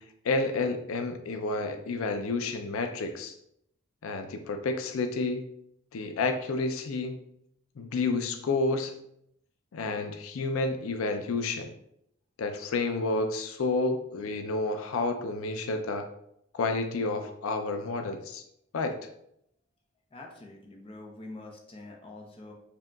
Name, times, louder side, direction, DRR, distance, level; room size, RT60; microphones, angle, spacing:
voice 1, 0.0-3.4 4.0-5.5 5.9-7.2 7.8-8.9 9.7-11.7 12.4-16.1 16.5-18.4 18.7-19.0, left 3 dB, 85° left, 7 dB, 0.4 m, -30 dB
voice 2, 20.1-22.5, left 2 dB, 25° left, 1 dB, 0.5 m, -45 dB
4.8 x 2.8 x 2.3 m, 0.74 s
head